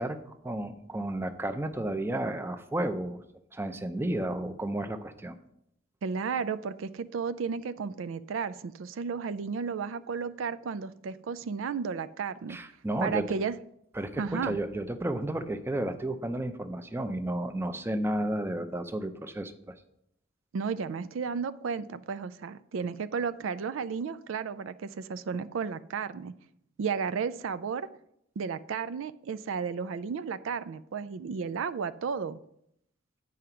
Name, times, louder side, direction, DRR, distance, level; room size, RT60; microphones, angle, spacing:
voice 1, 0.0-3.2 3.5-5.4 12.5-13.2 14.0-19.7, right 1 dB, 10° right, 8 dB, 0.5 m, -32 dB
voice 2, 6.0-12.6 13.0-13.6 14.2-14.6 20.5-26.3 26.8-27.9 28.4-32.4, right 6 dB, 80° right, 13 dB, 0.4 m, -33 dB
9.4 x 4.9 x 5.7 m, 0.74 s
head